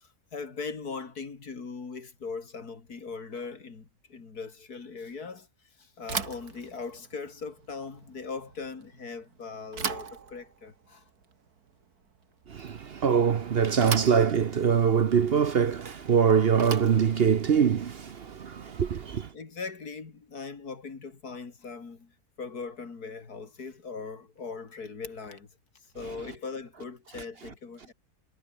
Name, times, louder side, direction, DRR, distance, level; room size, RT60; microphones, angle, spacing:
voice 1, 0.0-5.5 5.8-11.0 19.3-25.5 25.9-27.9, left 4 dB, 90° left, 3.2 m, -40 dB
Bicycle / Thump thud, 6.0-19.1, right 6 dB, 80° right, 2.4 m, -40 dB
voice 2, 12.5-19.3, right 7 dB, 50° right, 0.9 m, -23 dB
omnidirectional pair, 1.6 m